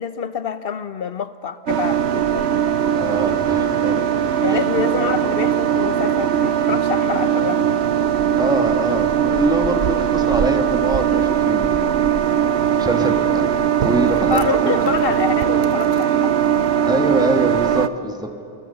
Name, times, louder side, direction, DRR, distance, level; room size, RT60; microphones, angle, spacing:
voice 1, 0.0-2.5 4.4-7.7 14.3-16.4, left 6 dB, 65° left, 12 dB, 1.1 m, -26 dB
sound 1, 1.7-7.3, left 1 dB, 15° left, 5.2 m, -40 dB
sound 2, 1.7-17.9, right 9 dB, 80° right, 1.0 m, -19 dB
voice 2, 2.9-4.0 4.4-4.6 8.4-11.8 12.7-14.9 16.9-18.4, right 1 dB, 5° right, 4 dB, 1.7 m, -24 dB
29.5 x 21.0 x 6.8 m, 2.7 s
omnidirectional pair, 1.1 m